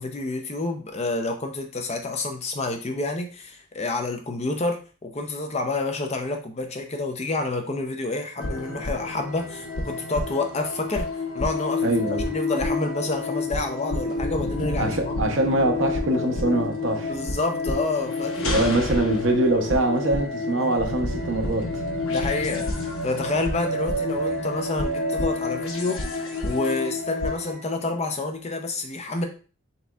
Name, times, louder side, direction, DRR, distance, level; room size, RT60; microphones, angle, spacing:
voice 1, 0.0-11.1 11.3-15.2 17.1-18.7 20.6-20.7 22.1-22.7 23.0-26.0 26.4-29.2, left 2 dB, 30° left, 0.5 m, -29 dB
sound 1, 8.4-27.6, left 2 dB, 80° left, 0.9 m, -29 dB
voice 2, 11.8-12.3 14.8-17.1 18.4-21.8, right 1 dB, 60° right, 0.7 m, -23 dB
4.2 x 3.9 x 2.3 m
head